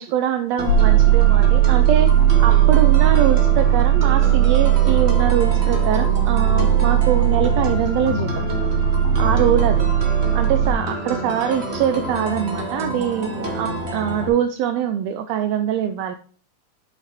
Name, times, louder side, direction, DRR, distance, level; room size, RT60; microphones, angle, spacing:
voice 1, 0.0-2.1 2.4-8.4 9.2-9.9 10.3-16.2, right 9 dB, 80° right, 9 dB, 1.5 m, -23 dB
sound 1, 0.6-14.3, right 1 dB, 35° right, 1.1 m, -29 dB
sound 2, 0.7-10.7, right 10 dB, 80° left, 2.5 m, -17 dB
8.1 x 5.9 x 4.2 m, 0.43 s
omnidirectional pair, 3.5 m